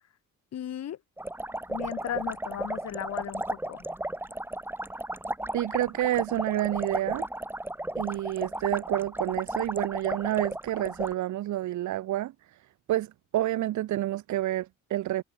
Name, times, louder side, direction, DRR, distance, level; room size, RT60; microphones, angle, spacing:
voice 1, 0.5-1.0 1.7-3.8, left 10 dB, 55° left, 1.5 m, -36 dB
sound 1, 1.2-11.1, right 1 dB, 5° right, 1.6 m, -34 dB
voice 2, 5.5-7.3 8.0-12.6 12.9-15.2, right 14 dB, 75° right, 1.1 m, -29 dB
cardioid pair, 90°, 30 cm